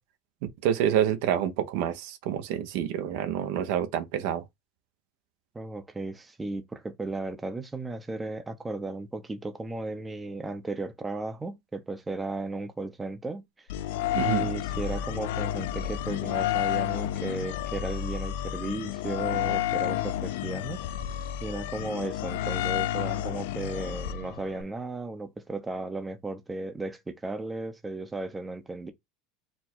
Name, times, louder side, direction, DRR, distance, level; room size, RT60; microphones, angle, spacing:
voice 1, 0.6-4.4 14.1-14.6, right 10 dB, 70° right, 0.9 m, -27 dB
voice 2, 5.5-13.7 14.2-20.8 21.4-28.9, right 2 dB, 10° right, 0.7 m, -35 dB
sound 1, 13.7-24.6, left 12 dB, 80° left, 0.4 m, -31 dB
4.3 x 2.3 x 4.3 m
supercardioid pair, 125°, 0 cm